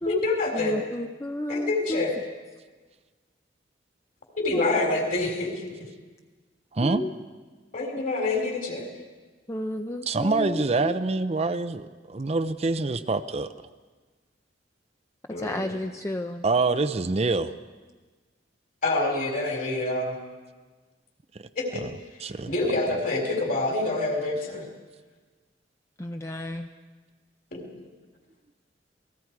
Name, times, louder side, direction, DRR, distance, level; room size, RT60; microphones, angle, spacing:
voice 1, 0.0-0.8 1.5-2.1 4.3-5.6 7.7-8.9 15.3-15.8 18.8-20.2 21.6-21.8 22.5-24.6 27.5-27.6, left 2 dB, 50° left, 1 dB, 4.2 m, -27 dB
voice 2, 0.5-2.1 4.5-4.7 6.8-7.1 9.5-10.9 15.4-16.4 26.0-26.7, left 1 dB, 15° left, 5 dB, 0.6 m, -32 dB
voice 3, 10.0-13.5 16.4-17.5 22.2-22.5, right 3 dB, 35° right, 10 dB, 0.6 m, -25 dB
28.0 x 19.5 x 4.8 m, 1.4 s
head